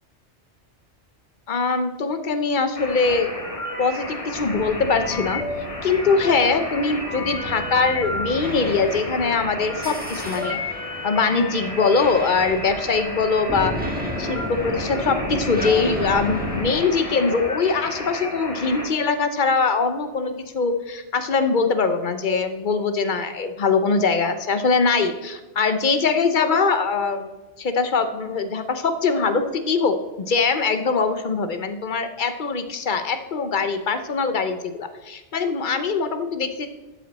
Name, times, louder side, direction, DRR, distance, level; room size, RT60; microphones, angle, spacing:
voice 1, 1.5-3.3 3.8-5.4 5.8-10.6 11.0-13.8 14.2-30.0 30.3-36.7, left 4 dB, 45° left, 9 dB, 0.9 m, -22 dB
sound 1, 2.7-18.9, left 1 dB, 30° left, 1.4 m, -32 dB
sound 2, 4.3-16.7, equal, 10° right, 1.4 m, -33 dB
12.5 x 7.5 x 4.2 m, 1.1 s
omnidirectional pair, 1.2 m